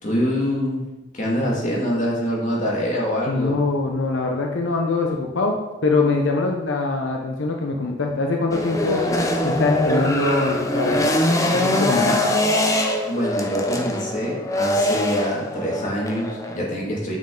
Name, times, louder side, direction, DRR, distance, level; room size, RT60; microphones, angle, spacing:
voice 1, 0.0-0.8 1.1-3.6 13.1-17.2, equal, 40° left, -3 dB, 2.0 m, -25 dB
voice 2, 3.3-5.6 5.8-9.0 9.4-11.1 11.5-12.3, left 3 dB, 85° left, 2 dB, 0.7 m, -23 dB
sound 1, 8.5-16.6, left 1 dB, 15° left, 0.7 m, -22 dB
6.8 x 6.1 x 3.8 m, 1.1 s
head